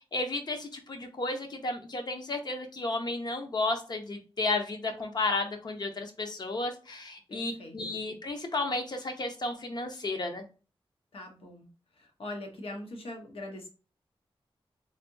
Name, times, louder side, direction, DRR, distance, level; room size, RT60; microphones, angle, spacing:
voice 1, 0.1-10.4, left 2 dB, 45° left, 5 dB, 0.7 m, -33 dB
voice 2, 7.3-8.0 11.1-11.7 12.0-13.7, left 1 dB, 75° left, 2 dB, 0.9 m, -42 dB
3.3 x 2.7 x 2.6 m, 0.34 s
wide cardioid pair, 135°, 10 cm